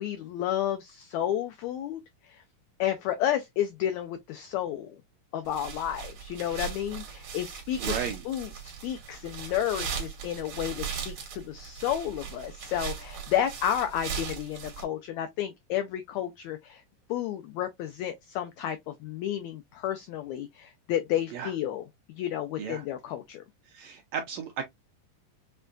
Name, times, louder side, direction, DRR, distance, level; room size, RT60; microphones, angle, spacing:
voice 1, 0.0-2.4 2.8-5.0 5.3-7.9 8.2-16.8 17.1-21.8 22.2-23.4, left 11 dB, 85° left, 1.6 m, -31 dB
sound 1, 5.5-14.8, right 7 dB, 60° right, 2.2 m, -38 dB
voice 2, 7.8-8.2 21.3-21.5 22.6-22.8 23.6-24.6, right 7 dB, 75° right, 1.6 m, -34 dB
6.5 x 2.3 x 2.4 m
omnidirectional pair, 3.8 m